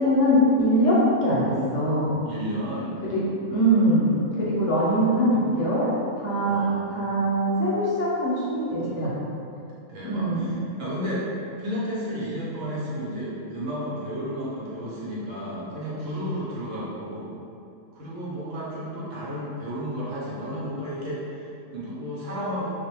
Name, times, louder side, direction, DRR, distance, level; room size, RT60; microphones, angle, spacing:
voice 1, 0.0-2.2 3.0-3.2 3.5-9.1 10.0-10.5, equal, 65° left, -7 dB, 0.8 m, -22 dB
voice 2, 2.3-2.9 6.5-7.4 9.9-11.3 11.6-17.3 17.9-22.7, equal, 70° right, -8 dB, 1.0 m, -32 dB
2.5 x 2.1 x 2.9 m, 2.6 s
omnidirectional pair, 1.5 m